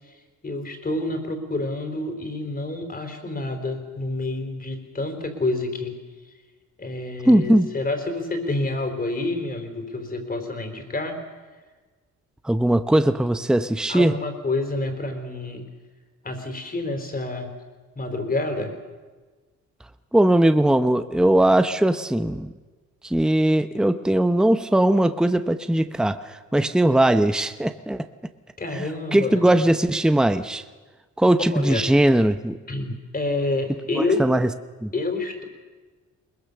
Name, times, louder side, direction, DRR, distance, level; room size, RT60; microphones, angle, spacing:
voice 1, 0.4-5.9 6.8-11.2 13.9-15.6 16.2-17.5 18.0-18.7 28.6-29.5 31.5-31.9 32.7-34.2 34.9-35.4, left 2 dB, 30° left, 5 dB, 4.0 m, -28 dB
voice 2, 7.3-7.7 12.4-14.2 20.1-22.5 23.0-28.1 29.1-30.6 31.2-32.6 34.2-34.5 34.8-34.9, right 1 dB, ahead, 10 dB, 0.8 m, -19 dB
22.0 x 20.0 x 6.8 m, 1.3 s
cardioid pair, 90°, 30 cm